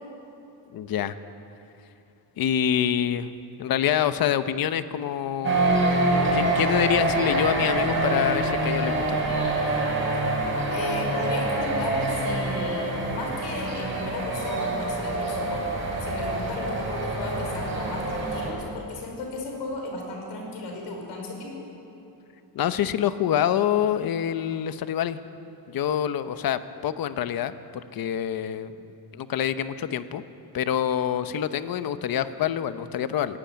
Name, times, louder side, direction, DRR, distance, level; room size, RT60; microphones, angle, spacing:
voice 1, 0.7-1.2 2.4-3.3 3.6-5.7 6.3-9.4 22.5-25.2 25.7-28.7 29.1-30.2 30.5-33.4, left 9 dB, 60° left, 11 dB, 0.9 m, -26 dB
sound 1, 5.4-18.5, right 2 dB, 30° right, 6.1 m, -26 dB
voice 2, 10.7-15.6 16.0-21.7, left 2 dB, 90° left, 1 dB, 5.2 m, -35 dB
19.0 x 17.5 x 9.3 m, 2.8 s
cardioid pair, 150°, 41 cm